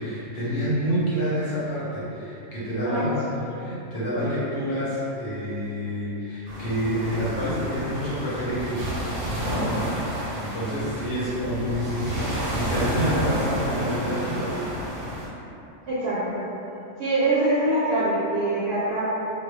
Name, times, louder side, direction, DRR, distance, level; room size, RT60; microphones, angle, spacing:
voice 1, 0.0-8.9 9.4-9.8 10.2-14.6, equal, 60° left, -9 dB, 0.7 m, -28 dB
voice 2, 2.8-3.1 3.6-3.9 15.9-16.4 17.0-19.0, right 2 dB, 70° right, -9 dB, 0.8 m, -24 dB
sound 1, 6.5-15.3, equal, 90° right, 1.0 m, -30 dB
2.1 x 2.0 x 2.9 m, 2.8 s
omnidirectional pair, 1.2 m